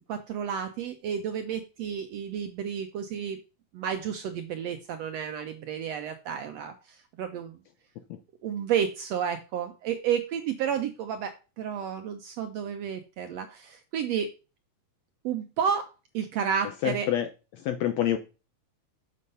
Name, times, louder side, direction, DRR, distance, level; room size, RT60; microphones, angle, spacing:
voice 1, 0.1-3.4 3.7-7.6 8.4-14.3 15.2-15.9 16.1-17.1, right 8 dB, 75° right, 7 dB, 1.6 m, -31 dB
voice 2, 16.8-18.2, left 11 dB, 75° left, 7 dB, 1.7 m, -28 dB
6.9 x 6.4 x 5.5 m, 0.32 s
omnidirectional pair, 3.7 m